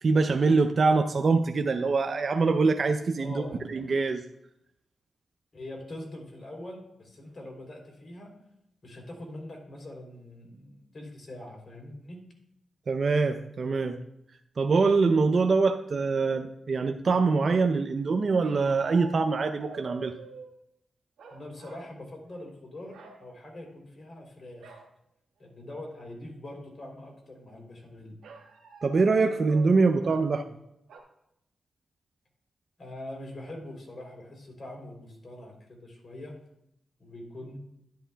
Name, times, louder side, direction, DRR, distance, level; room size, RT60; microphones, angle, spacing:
voice 1, 0.0-3.4 3.7-4.2 12.9-14.0 14.6-20.1 28.8-30.5, right 4 dB, 60° right, 6 dB, 0.5 m, -24 dB
voice 2, 3.2-3.6 5.5-8.3 8.8-12.2 21.3-24.7 25.4-28.2 32.8-36.4 37.0-37.6, left 1 dB, 55° left, 2 dB, 3.1 m, -43 dB
sound 1, 18.4-20.5 21.2-21.9 22.2-22.5 22.9-23.2 24.6-24.9 25.4-25.5 25.8-26.3 28.2-30.3 30.9-31.0, right 4 dB, 90° right, 1.4 m, -47 dB
11.0 x 10.5 x 2.2 m, 0.82 s
cardioid pair, 50°, 0 cm